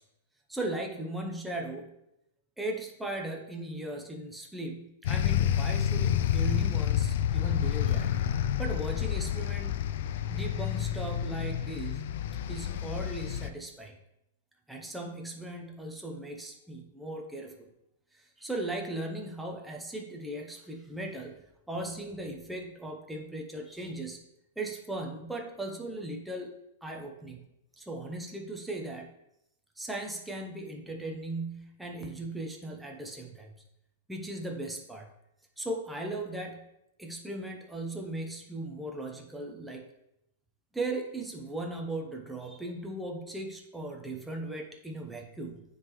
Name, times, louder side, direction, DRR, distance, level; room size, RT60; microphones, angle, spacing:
voice 1, 0.5-1.9 2.6-8.1 8.6-9.8 10.3-12.0 12.5-14.0 14.7-17.7 18.1-21.4 21.7-24.2 24.6-27.4 27.8-29.1 29.8-33.5 34.1-35.1 35.6-36.7 37.0-39.9 40.7-45.6, right 2 dB, ahead, 0 dB, 0.6 m, -38 dB
sound 1, 5.0-13.5, left 10 dB, 50° left, 0.3 m, -29 dB
9.4 x 3.8 x 3.0 m, 0.82 s
supercardioid pair, 165°, 0 cm